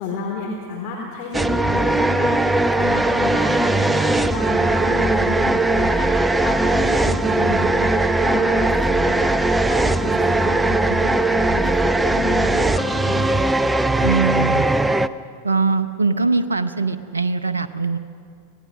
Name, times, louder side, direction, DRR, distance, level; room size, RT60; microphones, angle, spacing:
voice 1, 0.0-13.5, left 3 dB, 45° left, -1 dB, 3.1 m, -31 dB
sound 1, 1.3-15.1, right 2 dB, 5° right, 0.5 m, -19 dB
voice 2, 14.0-14.7 15.4-18.0, right 4 dB, 75° right, 10 dB, 0.7 m, -21 dB
25.5 x 18.0 x 6.3 m, 2.3 s
figure-of-eight pair, 90°, 0 cm